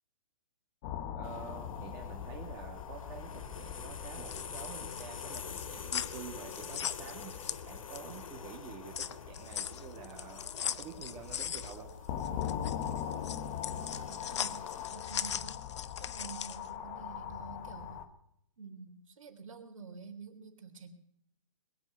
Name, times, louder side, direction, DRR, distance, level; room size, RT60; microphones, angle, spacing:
sound 1, 0.8-18.1, left 9 dB, 30° left, 1.3 m, -42 dB
sound 2, 1.2-14.9, left 6 dB, 80° left, 1.4 m, -47 dB
voice 1, 1.2-7.3 7.6-11.9, right 7 dB, 20° right, 1 dB, 2.1 m, -48 dB
sound 3, 4.3-8.2 8.6-16.7, left 9 dB, 55° left, 0.9 m, -39 dB
voice 2, 13.6-15.6 16.0-18.0 18.6-20.9, right 5 dB, 70° right, 7 dB, 3.2 m, -49 dB
21.0 x 7.2 x 9.2 m, 0.75 s
hypercardioid pair, 155°, 17 cm